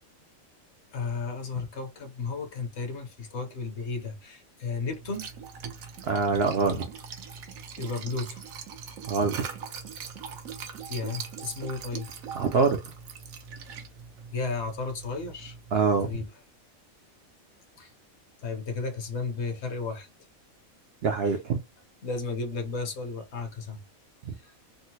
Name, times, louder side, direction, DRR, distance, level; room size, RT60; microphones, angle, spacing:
voice 1, 0.9-5.3 7.8-8.4 10.9-12.1 14.3-15.6 16.0-16.3 17.8-17.9 18.4-20.1 21.2-21.4 22.0-23.8 24.4-24.5, left 4 dB, 60° left, 1.0 m, -33 dB
Liquid, 4.9-16.1, right 6 dB, 80° right, 1.2 m, -41 dB
voice 2, 6.0-6.9 9.1-9.4 12.4-12.8 15.7-16.1 21.0-21.6, right 4 dB, 65° right, 0.6 m, -24 dB
3.7 x 2.1 x 2.7 m
omnidirectional pair, 1.4 m